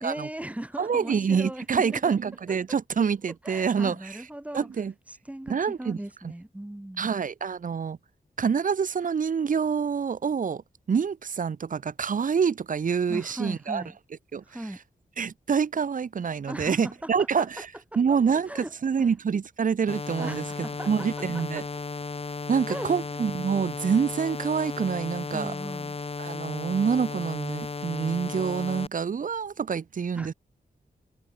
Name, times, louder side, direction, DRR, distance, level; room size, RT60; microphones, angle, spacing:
voice 1, 0.0-2.0 2.5-2.8 3.4-4.7 5.1-7.2 13.1-14.0 14.4-14.8 16.5-17.5 18.1-18.2 18.5-18.7 19.0-19.1 20.2-21.1 21.3-21.6 22.7-23.2 25.3-26.0 30.1-30.3, right 1 dB, 10° right, 1.2 m, -38 dB
voice 2, 0.8-4.2 4.5-4.9 5.5-6.0 7.0-8.0 8.4-10.6 10.9-13.8 14.3-14.4 15.2-17.7 18.0-21.6 22.5-25.5 26.2-30.3, right 6 dB, 55° right, 0.9 m, -26 dB
sound 1, 19.9-28.9, left 4 dB, 35° left, 3.1 m, -35 dB
wide cardioid pair, 155°, 16 cm